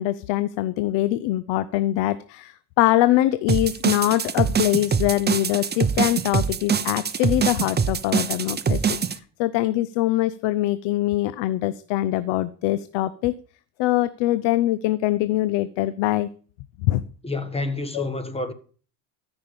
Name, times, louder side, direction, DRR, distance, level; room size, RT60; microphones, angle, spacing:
voice 1, 0.0-13.3 13.8-16.3 16.8-17.0 17.9-18.1, left 15 dB, 75° left, 0.8 m, -23 dB
sound 1, 3.5-9.2, right 6 dB, 20° right, 0.9 m, -24 dB
voice 2, 17.2-18.5, left 2 dB, 15° left, 1.7 m, -28 dB
14.0 x 6.0 x 6.9 m
supercardioid pair, 95°, 44 cm